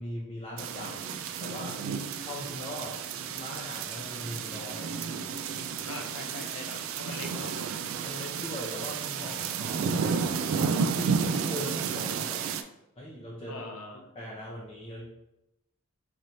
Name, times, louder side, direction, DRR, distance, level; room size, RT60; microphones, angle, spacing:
voice 1, 0.0-5.3 6.6-6.7 8.0-9.9 10.7-12.5 13.0-13.6 13.9-15.1, equal, 25° left, -5 dB, 0.6 m, -40 dB
sound 1, 0.6-12.6, right 6 dB, 65° right, 0.3 m, -32 dB
voice 2, 5.8-7.5 13.5-14.0, left 3 dB, 85° left, 2 dB, 0.6 m, -42 dB
4.3 x 3.1 x 2.6 m, 0.89 s
head